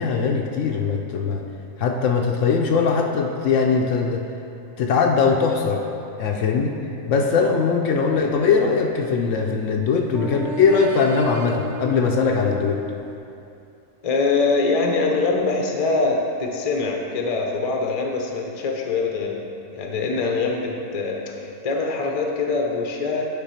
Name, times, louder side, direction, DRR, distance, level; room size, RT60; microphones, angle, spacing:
voice 1, 0.0-1.4 1.8-4.2 4.8-5.9 6.2-6.8 7.1-12.8, left 5 dB, 70° left, 2 dB, 0.9 m, -20 dB
sound 1, 8.0-9.6 10.1-13.2, right 2 dB, 65° right, 0.8 m, -35 dB
voice 2, 14.0-19.4 19.7-23.3, left 3 dB, 35° left, 1 dB, 0.7 m, -23 dB
9.5 x 3.8 x 5.6 m, 2.6 s
omnidirectional pair, 1.4 m